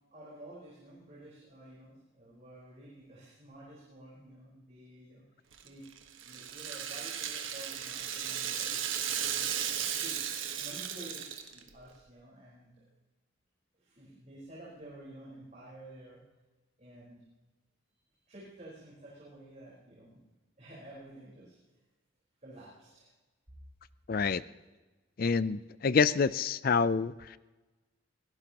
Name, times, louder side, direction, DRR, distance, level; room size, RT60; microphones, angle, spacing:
voice 1, 0.1-5.9 6.2-8.8 9.2-12.8 13.8-16.2 16.8-17.2 18.2-20.2 20.6-21.6 22.4-23.1, right 1 dB, 35° right, -7 dB, 4.4 m, -51 dB
Rattle (instrument), 5.5-11.7, right 9 dB, 80° right, 1.3 m, -35 dB
voice 2, 24.1-24.4 25.2-27.4, left 5 dB, 45° left, 16 dB, 0.4 m, -27 dB
22.5 x 16.5 x 3.0 m, 1.2 s
head